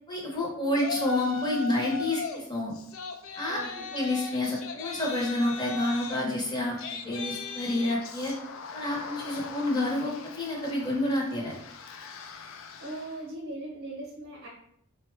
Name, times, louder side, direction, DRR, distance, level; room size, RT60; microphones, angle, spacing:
voice 1, 0.1-2.8 3.4-3.6 3.9-6.8 7.0-8.3 8.7-11.5, left 1 dB, 20° left, -2 dB, 0.7 m, -29 dB
Yell, 0.7-2.4 2.7-13.2, left 4 dB, 65° left, 0.3 m, -39 dB
voice 2, 3.5-3.9 12.8-14.5, right 1 dB, 50° right, -3 dB, 0.8 m, -39 dB
3.8 x 2.2 x 3.1 m, 0.69 s
head